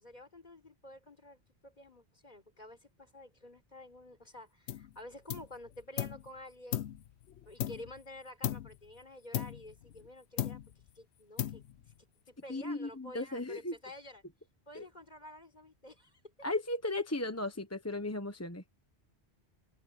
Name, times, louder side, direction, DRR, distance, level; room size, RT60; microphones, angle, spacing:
voice 1, 0.0-6.9 7.4-10.6 10.9-11.6 12.3-14.2 14.7-16.2, left 1 dB, 40° left, 4.8 m, -50 dB
sound 1, 4.7-5.0 5.3-6.3 6.7-8.1 8.4-8.8 9.3-10.1 10.4-10.9 11.4-11.9, left 11 dB, 80° left, 1.0 m, -37 dB
voice 2, 12.5-13.7 14.7-14.9 16.4-18.6, left 2 dB, 15° left, 1.0 m, -36 dB
open air
omnidirectional pair, 1.1 m